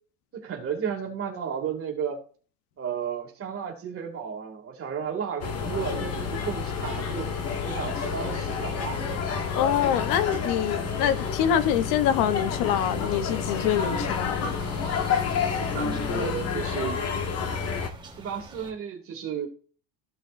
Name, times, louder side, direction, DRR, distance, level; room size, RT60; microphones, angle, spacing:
voice 1, 0.3-2.2 2.8-7.3 7.6-9.0 15.5-17.0 18.2-19.5, right 7 dB, 30° right, 2.3 m, -33 dB
sound 1, 5.4-17.9, left 6 dB, 35° left, 1.2 m, -29 dB
voice 2, 9.5-14.5, left 9 dB, 70° left, 0.9 m, -25 dB
sound 2, 12.8-18.7, right 2 dB, 10° right, 1.3 m, -45 dB
14.5 x 5.9 x 2.5 m
cardioid pair, 170°, 42 cm